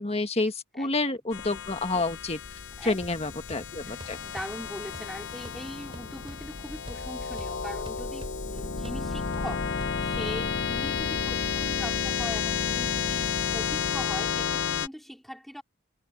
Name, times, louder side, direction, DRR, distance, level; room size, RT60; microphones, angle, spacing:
voice 1, 0.0-2.4 2.8-4.2, left 2 dB, 30° left, 1.5 m, -29 dB
sound 1, 1.3-14.9, left 6 dB, 55° left, 0.9 m, -31 dB
voice 2, 2.8-15.6, equal, ahead, 4.9 m, -41 dB
sound 2, 3.0-10.7, equal, 25° right, 7.5 m, -48 dB
head